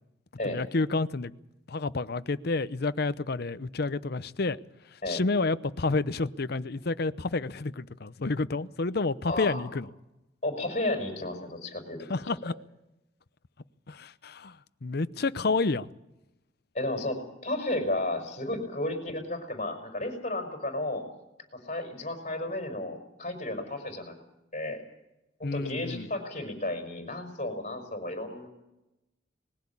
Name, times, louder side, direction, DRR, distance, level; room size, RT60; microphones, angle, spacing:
voice 1, 0.4-1.3 1.7-4.6 5.1-9.9 12.1-12.5 13.9-15.9 25.4-26.1, left 3 dB, 55° left, 14 dB, 0.7 m, -29 dB
voice 2, 9.3-9.6 10.4-12.0 16.7-21.0 21.5-24.1 24.5-24.8 25.4-28.5, left 1 dB, 40° left, 4 dB, 5.4 m, -33 dB
21.0 x 16.0 x 8.5 m, 0.91 s
head